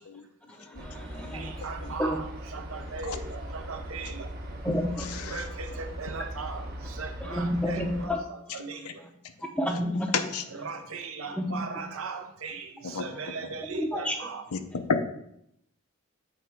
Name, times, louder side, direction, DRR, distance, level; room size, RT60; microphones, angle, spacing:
voice 1, 0.5-1.5 2.0-2.2 4.6-5.1 7.2-8.2 9.6-10.1 11.4-11.5 13.7-14.2, equal, 5° left, 3 dB, 0.6 m, -30 dB
sound 1, 0.8-8.1, equal, 40° right, 1.0 m, -39 dB
voice 2, 1.3-4.3 5.2-9.0 10.5-14.5, right 4 dB, 70° right, 6 dB, 0.8 m, -38 dB
voice 3, 5.1-5.4 8.8-8.9 10.1-10.4 12.8-13.0 14.5-14.6 14.9-15.0, left 5 dB, 85° left, 8 dB, 0.6 m, -30 dB
7.9 x 3.4 x 4.6 m, 0.75 s
head